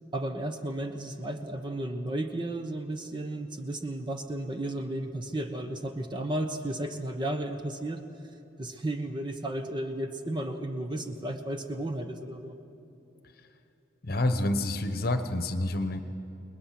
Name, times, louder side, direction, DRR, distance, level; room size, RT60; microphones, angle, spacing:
voice 1, 0.1-8.0 8.6-12.5, right 1 dB, 20° right, 5 dB, 1.0 m, -33 dB
voice 2, 14.0-16.0, left 1 dB, 45° left, 8 dB, 1.1 m, -28 dB
29.5 x 20.5 x 6.0 m, 2.9 s
head